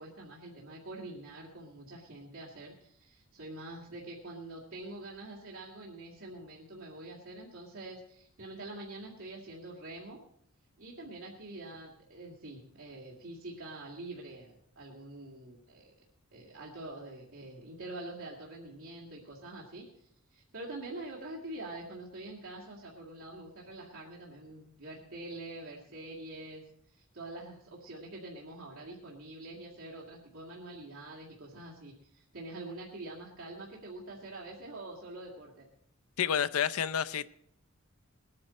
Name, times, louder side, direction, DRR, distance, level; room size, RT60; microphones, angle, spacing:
voice 1, 0.0-10.2 10.8-15.9 16.3-26.6 26.9-35.7, right 2 dB, 70° right, 2.1 m, -45 dB
voice 2, 36.2-37.3, left 8 dB, 90° left, 0.5 m, -29 dB
20.0 x 9.6 x 4.2 m
head